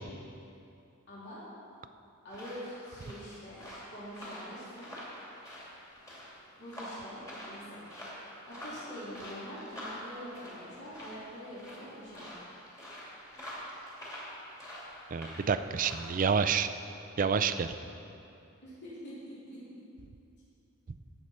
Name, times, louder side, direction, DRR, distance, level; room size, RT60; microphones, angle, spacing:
voice 1, 1.1-1.4 2.2-3.6 3.9-4.9 6.6-7.8 8.5-12.3 18.6-19.6, equal, 50° left, -9 dB, 2.9 m, -45 dB
sound 1, 2.3-16.2, equal, 15° left, 2.5 m, -46 dB
voice 2, 15.1-16.7 17.2-17.7, right 6 dB, 40° right, 11 dB, 0.4 m, -28 dB
17.0 x 6.7 x 4.3 m, 2.7 s
head